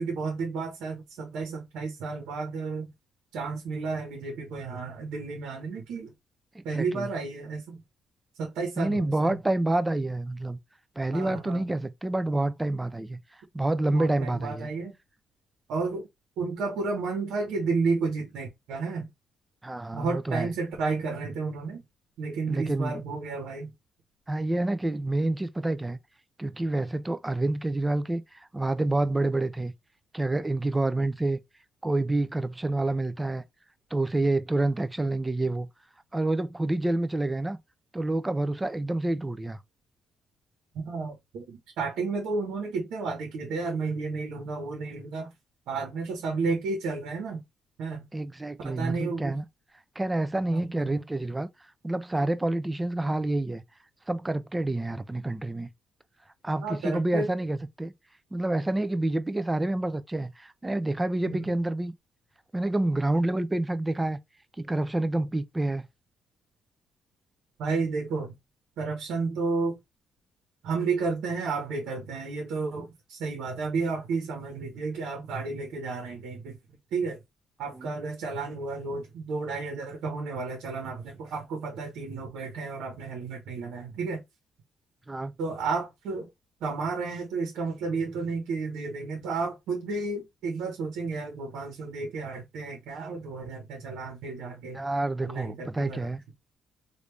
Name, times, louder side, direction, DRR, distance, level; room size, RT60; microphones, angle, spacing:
voice 1, 0.0-2.9 3.3-6.1 6.6-7.8 8.4-9.4 11.1-11.7 13.9-14.9 15.7-16.1 16.4-19.1 19.9-21.8 22.2-23.7 40.8-45.3 45.7-47.4 47.8-48.0 48.6-49.4 50.5-50.9 56.6-57.3 61.3-61.5 67.6-68.3 68.8-69.8 70.6-76.6 76.9-77.2 77.6-84.2 85.4-86.3 86.6-94.8 95.2-96.1, right 4 dB, 85° right, 1.1 m, -32 dB
voice 2, 6.5-7.1 8.8-10.6 11.0-13.2 13.5-14.7 19.6-20.5 22.5-23.0 24.3-26.0 26.4-29.7 30.1-31.4 31.8-33.4 33.9-35.7 36.1-37.6 37.9-39.6 48.1-49.4 50.0-51.5 51.8-53.6 54.1-55.7 56.4-57.9 58.3-61.9 62.5-64.2 64.6-65.9 77.7-77.9 85.1-85.3 94.7-96.2, right 2 dB, 15° right, 0.4 m, -28 dB
3.3 x 2.6 x 3.2 m
cardioid pair, 90°, 0 cm